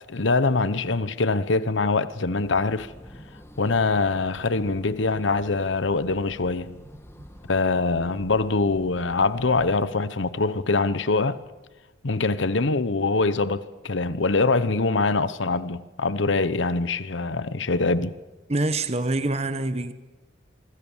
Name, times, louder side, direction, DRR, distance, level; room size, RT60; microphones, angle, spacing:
voice 1, 0.1-2.9 3.6-6.8 7.5-11.4 12.0-18.2, left 3 dB, 80° left, 0.9 m, -24 dB
sound 1, 2.4-9.9, equal, 15° left, 1.7 m, -47 dB
voice 2, 18.5-19.9, right 2 dB, 35° right, 1.1 m, -25 dB
25.5 x 24.5 x 7.3 m
head